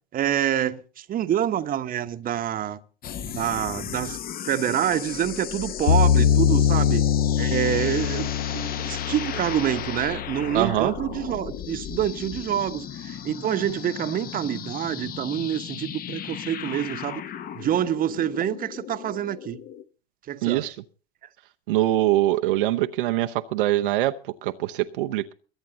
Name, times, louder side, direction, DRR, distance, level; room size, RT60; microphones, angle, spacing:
voice 1, 0.1-2.8 3.2-4.2 4.5-7.1 7.4-17.2 17.5-19.6 20.3-20.7, right 10 dB, 30° right, 1.1 m, -27 dB
sound 1, 3.0-19.8, left 9 dB, 30° left, 0.9 m, -36 dB
sound 2, 5.9-11.0, left 9 dB, 65° left, 0.7 m, -23 dB
voice 2, 10.5-10.9 20.4-20.7 21.7-25.3, right 15 dB, 60° right, 0.8 m, -23 dB
22.5 x 9.3 x 3.9 m
figure-of-eight pair, 80°, 30 cm